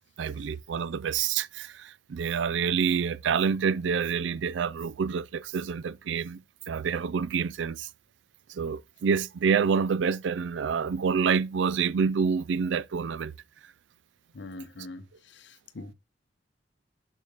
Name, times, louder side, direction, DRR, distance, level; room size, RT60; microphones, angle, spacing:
voice 1, 0.2-6.4 6.7-7.9 8.5-13.3, right 6 dB, 75° right, 0.4 m, -27 dB
voice 2, 14.3-15.9, left 2 dB, 65° left, 0.7 m, -43 dB
6.7 x 6.5 x 2.9 m
head